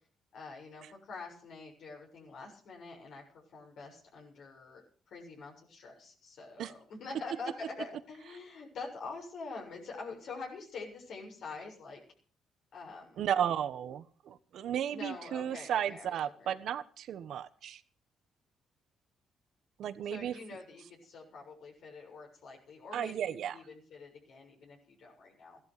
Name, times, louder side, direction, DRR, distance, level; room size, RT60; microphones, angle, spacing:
voice 1, 0.3-12.0 12.7-13.3 14.9-16.6 20.0-25.6, left 3 dB, 70° left, -1 dB, 7.0 m, -46 dB
voice 2, 13.2-17.8 19.8-20.3 22.9-23.5, right 9 dB, 70° right, 12 dB, 1.3 m, -34 dB
15.5 x 12.0 x 6.8 m, 0.43 s
cardioid pair, 90°, 0 cm